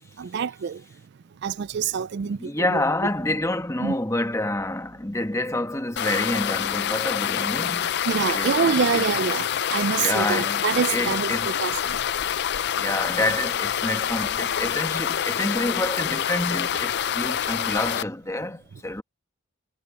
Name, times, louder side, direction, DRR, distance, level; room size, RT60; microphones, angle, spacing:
voice 1, 0.2-0.8 1.4-2.8 3.8-4.0 8.1-12.0, right 6 dB, 55° right, 0.3 m, -26 dB
voice 2, 2.4-8.0 8.3-9.0 10.0-10.6 10.9-11.6 12.8-19.0, left 1 dB, 15° left, 1.3 m, -28 dB
sound 1, 6.0-18.0, left 9 dB, 55° left, 0.4 m, -26 dB
head